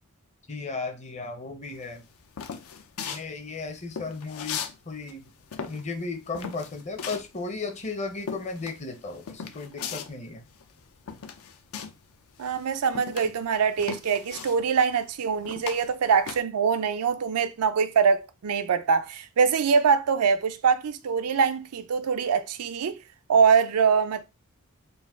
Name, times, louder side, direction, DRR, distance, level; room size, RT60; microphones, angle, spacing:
voice 1, 0.5-2.0 3.1-5.3 5.7-10.5, left 3 dB, 30° left, 0.7 m, -35 dB
sound 1, 1.8-4.8 5.0-12.1 12.4-16.4, left 7 dB, 70° left, 0.5 m, -38 dB
voice 2, 12.4-23.0 23.3-24.2, right 6 dB, 85° right, 0.5 m, -23 dB
3.9 x 2.5 x 3.5 m
head